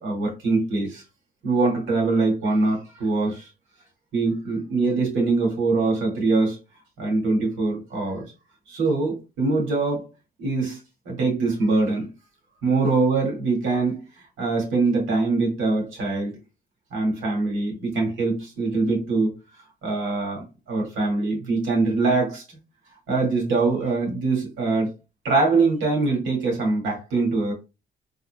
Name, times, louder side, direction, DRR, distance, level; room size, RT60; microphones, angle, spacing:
voice 1, 0.0-1.0 1.4-3.5 4.1-6.6 7.0-8.2 8.7-10.1 10.4-10.8 11.1-12.1 12.6-14.0 14.4-16.3 16.9-19.3 19.8-22.4 23.1-24.9 25.2-27.5, right 3 dB, 80° right, 2.0 m, -23 dB
3.8 x 3.7 x 2.2 m
cardioid pair, 90°, 20 cm